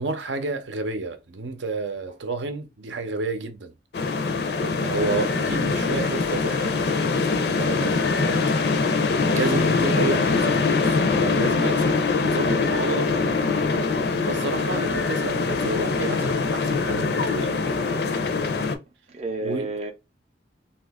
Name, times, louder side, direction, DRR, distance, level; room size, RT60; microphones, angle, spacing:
voice 1, 0.0-3.7 4.6-6.7 7.5-8.8 9.3-13.3 14.2-17.6 19.4-19.7, right 3 dB, 80° right, 0.6 m, -31 dB
sound 1, 3.9-18.7, left 4 dB, 60° left, 0.5 m, -23 dB
voice 2, 19.1-19.9, right 3 dB, 35° right, 0.5 m, -32 dB
2.7 x 2.4 x 3.4 m
head